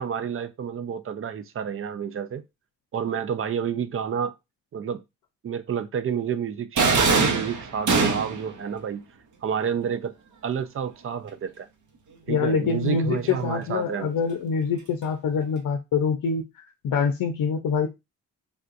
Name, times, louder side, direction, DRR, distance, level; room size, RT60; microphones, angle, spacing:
voice 1, 0.0-2.4 2.9-4.3 4.7-5.0 5.4-9.0 9.4-10.1 10.4-11.7 12.3-14.1, right 7 dB, 40° right, 0.5 m, -29 dB
sound 1, 6.8-8.5, right 4 dB, 55° right, 1.0 m, -21 dB
voice 2, 12.3-16.4 16.8-17.9, left 5 dB, 65° left, 0.6 m, -25 dB
3.5 x 2.6 x 2.5 m
supercardioid pair, 65°, 35 cm